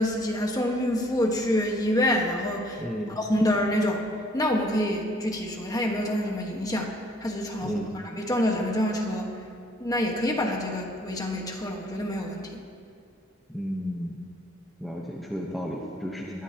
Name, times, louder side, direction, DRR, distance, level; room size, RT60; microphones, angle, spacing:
voice 1, 0.0-4.0 4.3-6.9 7.2-9.3 9.8-12.6, left 1 dB, 20° left, 1 dB, 1.4 m, -27 dB
voice 2, 2.8-3.1 7.6-7.9 13.5-14.2 14.8-16.4, equal, ahead, -3 dB, 0.9 m, -33 dB
22.0 x 12.0 x 2.9 m, 2.5 s
head